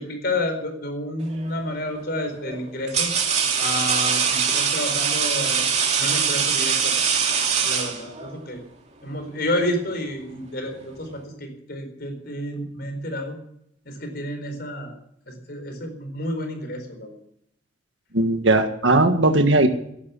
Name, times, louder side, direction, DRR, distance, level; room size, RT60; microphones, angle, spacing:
voice 1, 0.0-3.1 3.5-7.0 7.6-8.6 9.0-13.4 13.9-14.9 15.3-17.2, left 1 dB, 55° left, 6 dB, 4.4 m, -30 dB
sound 1, 1.3-1.6 2.4-8.4, right 6 dB, 35° right, 2.7 m, -23 dB
voice 2, 18.1-19.7, right 2 dB, 80° right, 6 dB, 1.7 m, -18 dB
17.0 x 11.5 x 7.1 m, 0.75 s
head